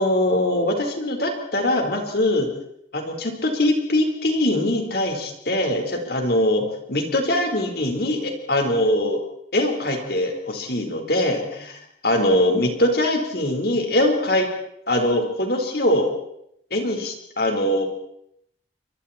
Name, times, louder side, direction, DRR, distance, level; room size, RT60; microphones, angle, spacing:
voice 1, 0.0-2.5 2.9-9.2 9.5-11.7 12.0-14.5 14.9-16.1 16.7-17.9, left 1 dB, 55° left, 3 dB, 4.5 m, -22 dB
28.5 x 25.0 x 4.4 m, 0.74 s
head